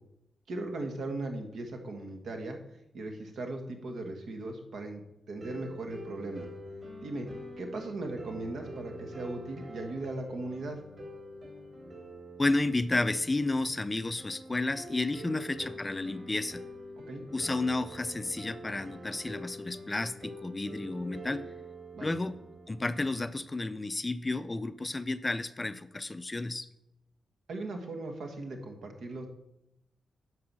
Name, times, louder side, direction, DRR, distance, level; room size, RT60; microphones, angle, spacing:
voice 1, 0.5-2.6 2.9-5.0 5.3-6.5 7.0-7.3 7.6-10.8 15.2-15.3 17.1-17.2 21.9-22.1 27.5-29.3, right 2 dB, 75° right, 3 dB, 1.7 m, -38 dB
sound 1, 5.4-23.4, equal, 40° right, 3.4 m, -46 dB
voice 2, 12.4-16.6 17.3-21.4 22.0-22.4 22.7-26.7, left 2 dB, 20° left, 12 dB, 0.5 m, -32 dB
11.0 x 4.8 x 7.4 m, 0.86 s
cardioid pair, 95°, 0 cm